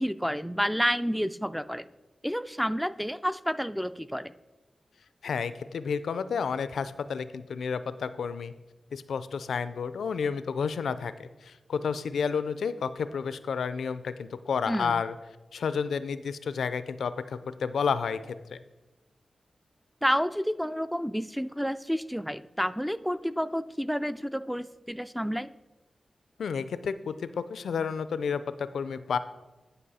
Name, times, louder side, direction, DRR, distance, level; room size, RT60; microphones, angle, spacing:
voice 1, 0.0-1.8 2.2-4.3 14.7-15.0 20.0-25.5, equal, ahead, 14 dB, 0.3 m, -30 dB
voice 2, 5.2-8.5 8.9-15.1 15.5-18.2 18.5-18.6 26.4-29.2, left 6 dB, 90° left, 13 dB, 0.3 m, -31 dB
9.9 x 5.3 x 4.1 m, 1.1 s
cardioid pair, 45°, 0 cm